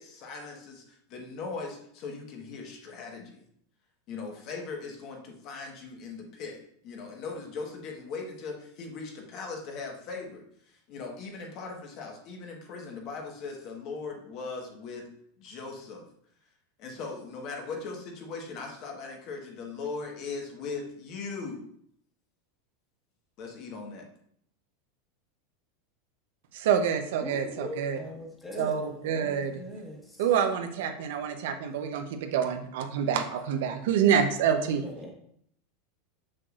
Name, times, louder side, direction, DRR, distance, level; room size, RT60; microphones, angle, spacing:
voice 1, 0.0-3.4 4.1-15.1 15.4-16.1 16.8-21.6 23.4-24.1, left 4 dB, 45° left, 1 dB, 1.3 m, -39 dB
voice 2, 26.5-28.0 28.6-29.6 30.2-34.8, right 8 dB, 70° right, 6 dB, 0.7 m, -27 dB
voice 3, 27.2-30.0 34.6-35.1, left 1 dB, 10° left, 0 dB, 1.3 m, -40 dB
6.5 x 5.9 x 2.5 m, 0.67 s
supercardioid pair, 150°, 0 cm